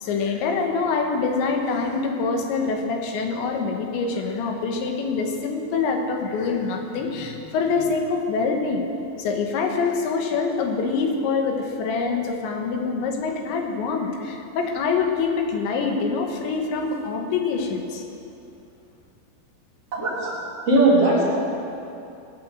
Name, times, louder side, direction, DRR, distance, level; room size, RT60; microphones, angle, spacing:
voice 1, 0.0-8.9 9.2-18.0, left 4 dB, 80° left, 3 dB, 3.7 m, -25 dB
voice 2, 19.9-20.4 20.7-21.2, right 2 dB, 35° right, -7 dB, 4.3 m, -18 dB
22.0 x 8.3 x 7.8 m, 2.7 s
omnidirectional pair, 5.2 m